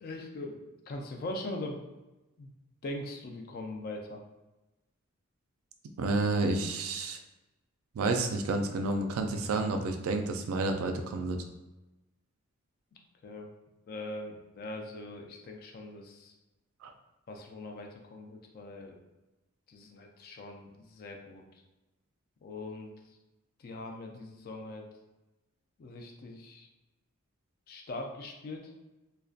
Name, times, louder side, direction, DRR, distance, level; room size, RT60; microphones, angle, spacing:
voice 1, 0.0-1.8 2.4-2.5 2.8-4.2 13.2-13.5 13.9-16.4 17.3-19.0 19.7-21.4 22.4-23.2 23.6-24.9 25.8-26.7 27.7-28.7, left 2 dB, 45° left, 2 dB, 0.3 m, -41 dB
voice 2, 6.0-7.2 7.9-11.4 16.8-16.9, right 3 dB, 75° right, 5 dB, 0.3 m, -30 dB
2.5 x 2.1 x 2.3 m, 1.0 s
head